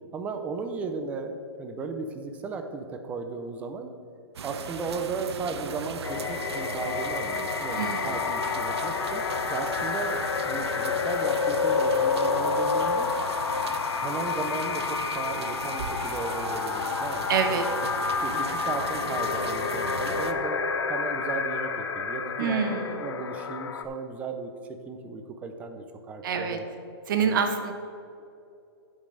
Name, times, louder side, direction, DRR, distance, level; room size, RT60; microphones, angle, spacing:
voice 1, 0.1-3.9 4.4-9.2 9.5-10.2 10.4-13.1 14.0-17.6 18.2-20.6 20.9-24.5 24.9-26.7 27.2-27.5, right 4 dB, 10° right, 6 dB, 0.5 m, -35 dB
sound 1, 4.4-20.3, right 6 dB, 75° right, 0.8 m, -38 dB
sound 2, 6.0-23.8, left 5 dB, 80° left, 0.8 m, -29 dB
voice 2, 7.7-8.2 17.3-17.6 22.4-23.1 26.2-26.6 27.1-27.7, right 6 dB, 50° right, 6 dB, 1.2 m, -26 dB
10.0 x 5.3 x 6.5 m, 2.6 s
hypercardioid pair, 165°, 14 cm